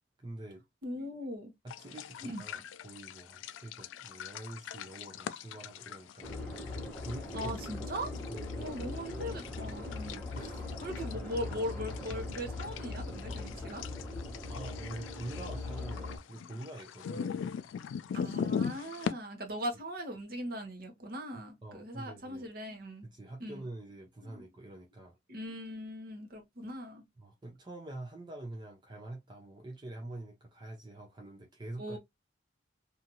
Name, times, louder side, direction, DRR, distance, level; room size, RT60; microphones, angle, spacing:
voice 1, 0.2-0.6 1.6-7.5 7.8-8.0 8.3-8.9 10.3-11.3 14.5-17.4 21.6-22.5 23.1-25.2 27.2-32.0, right 1 dB, 25° right, 0.5 m, -46 dB
voice 2, 0.8-1.5 2.2-2.4 7.3-8.2 8.5-13.8 16.0-16.1 16.4-16.6 18.1-23.1 23.4-23.6 24.2-24.4 25.3-27.0 31.8-32.0, equal, 50° right, 0.9 m, -40 dB
sound 1, 1.7-19.1, left 7 dB, 85° left, 0.3 m, -41 dB
sound 2, 6.2-16.2, left 2 dB, 10° left, 1.0 m, -40 dB
2.7 x 2.4 x 2.7 m
head